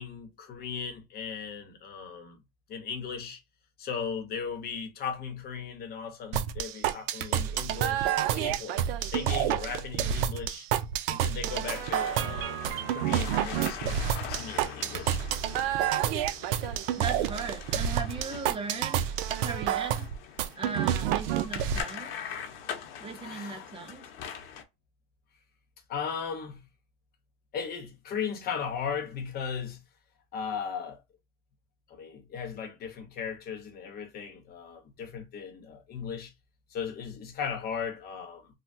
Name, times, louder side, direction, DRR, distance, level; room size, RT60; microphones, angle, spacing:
voice 1, 0.0-2.4 2.7-3.4 3.8-10.7 11.1-12.6 12.9-14.0 14.3-15.2 23.2-23.7 25.9-26.6 27.5-29.8 30.3-31.0 31.9-36.3 36.7-38.5, left 6 dB, 30° left, 0.9 m, -37 dB
sound 1, 6.3-21.8, right 10 dB, 75° right, 0.5 m, -29 dB
sound 2, 11.7-24.6, left 7 dB, 75° left, 0.9 m, -42 dB
voice 2, 16.9-19.1 19.4-20.1 20.6-22.3 23.0-24.1, right 4 dB, 20° right, 0.6 m, -38 dB
3.3 x 2.2 x 2.6 m
supercardioid pair, 140°, 29 cm